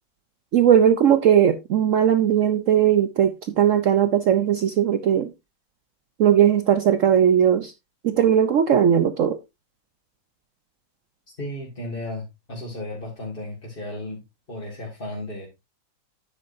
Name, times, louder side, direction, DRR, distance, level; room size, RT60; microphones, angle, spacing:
voice 1, 0.5-5.3 6.2-7.7 8.0-9.4, right 9 dB, 80° right, 0.7 m, -18 dB
voice 2, 11.4-14.2 14.5-15.5, left 1 dB, 25° left, 2.4 m, -34 dB
9.5 x 8.7 x 2.7 m
omnidirectional pair, 2.1 m